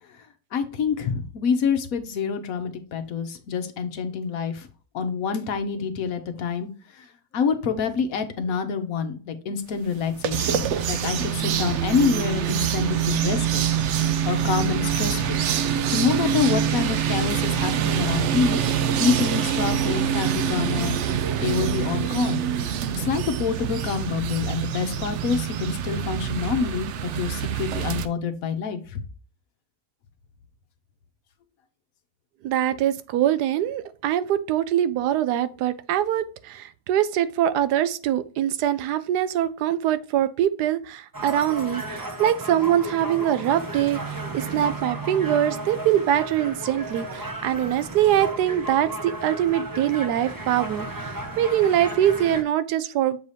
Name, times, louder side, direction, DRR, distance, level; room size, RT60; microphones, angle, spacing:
voice 1, 0.5-4.7 4.9-6.7 7.0-7.1 7.3-13.6 14.2-15.4 15.9-18.6 19.0-21.0 21.4-22.4 22.9-29.0, left 6 dB, 65° left, 1.1 m, -27 dB
sound 1, 9.9-28.1, right 8 dB, 70° right, 0.7 m, -25 dB
voice 2, 32.4-53.2, right 11 dB, 90° right, 1.2 m, -23 dB
sound 2, 41.1-52.4, right 2 dB, 35° right, 0.3 m, -34 dB
7.1 x 2.8 x 4.9 m
omnidirectional pair, 1.7 m